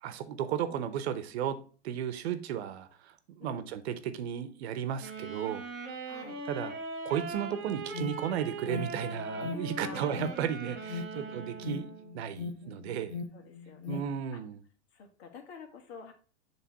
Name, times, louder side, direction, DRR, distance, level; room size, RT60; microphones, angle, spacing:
voice 1, 0.0-1.6 1.8-5.6 6.5-6.7 7.0-11.9 12.1-13.2 13.9-14.6, right 9 dB, 70° right, 0.9 m, -34 dB
voice 2, 0.7-1.0 3.4-3.7 6.1-6.4 9.8-10.1 11.1-11.4 12.6-12.8 13.3-14.1 14.3-14.4 14.9-16.1, left 5 dB, 65° left, 1.8 m, -48 dB
Wind instrument woodwind instrument, 5.0-12.2, right 3 dB, 25° right, 1.4 m, -40 dB
Alarm, 7.3-14.0, left 5 dB, 85° left, 1.2 m, -41 dB
7.2 x 3.4 x 4.6 m
supercardioid pair, 140°, 34 cm